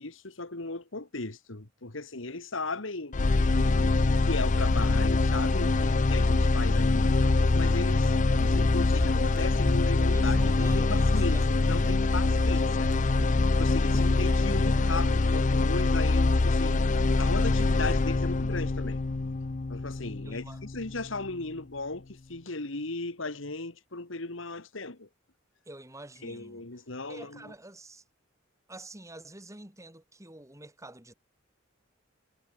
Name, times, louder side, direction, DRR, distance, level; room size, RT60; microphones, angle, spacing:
voice 1, 0.0-12.9 13.6-19.0 19.7-25.1 26.2-27.5, left 3 dB, 75° left, 2.1 m, -37 dB
sound 1, 3.1-21.1, left 3 dB, 40° left, 0.6 m, -24 dB
Run, 8.0-15.1, equal, 5° left, 1.3 m, -38 dB
voice 2, 10.1-11.5 20.3-20.6 25.7-26.6 27.1-28.0 28.7-31.1, right 2 dB, 15° right, 3.5 m, -47 dB
head